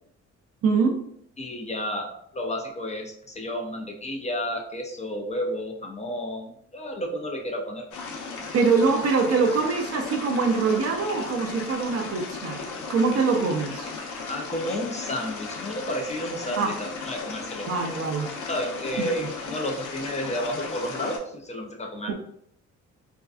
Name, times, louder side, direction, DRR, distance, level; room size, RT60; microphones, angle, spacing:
voice 1, 0.6-1.0 8.5-12.6 12.9-13.9 16.6-16.7 17.7-18.4 19.0-19.3 22.1-22.2, right 4 dB, 55° right, 4 dB, 0.5 m, -24 dB
voice 2, 1.4-7.9 14.3-17.7 18.5-22.1, equal, 25° left, 2 dB, 0.4 m, -31 dB
sound 1, 7.9-21.2, left 4 dB, 80° left, 0.6 m, -36 dB
2.5 x 2.2 x 2.3 m, 0.68 s
cardioid pair, 90°, 30 cm